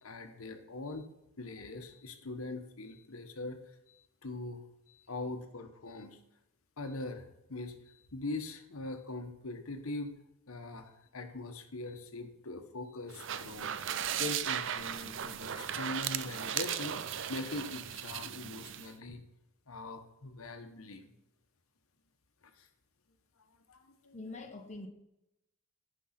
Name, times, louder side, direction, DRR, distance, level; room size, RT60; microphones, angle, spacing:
voice 1, 0.0-1.1 1.4-6.2 6.8-10.1 10.5-19.2 19.7-21.1 22.6-22.7 23.4-24.2, left 2 dB, 85° left, 6 dB, 1.1 m, -42 dB
sound 1, 13.1-18.9, right 9 dB, 60° right, 0.5 m, -37 dB
voice 2, 24.1-24.9, left 2 dB, 35° left, 3 dB, 1.2 m, -44 dB
10.5 x 5.5 x 5.8 m, 0.86 s
head